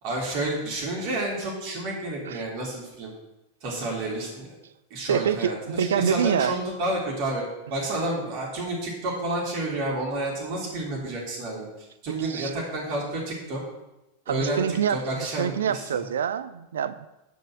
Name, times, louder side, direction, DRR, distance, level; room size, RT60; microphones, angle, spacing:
voice 1, 0.0-3.1 3.6-4.5 4.9-7.4 7.7-13.6 14.3-14.6 14.9-16.0, right 1 dB, 45° right, -3 dB, 3.7 m, -30 dB
voice 2, 5.1-6.6 12.3-12.5 14.3-17.1, right 8 dB, 65° right, 14 dB, 0.5 m, -26 dB
9.4 x 5.4 x 6.2 m, 0.97 s
figure-of-eight pair, 90°, 0 cm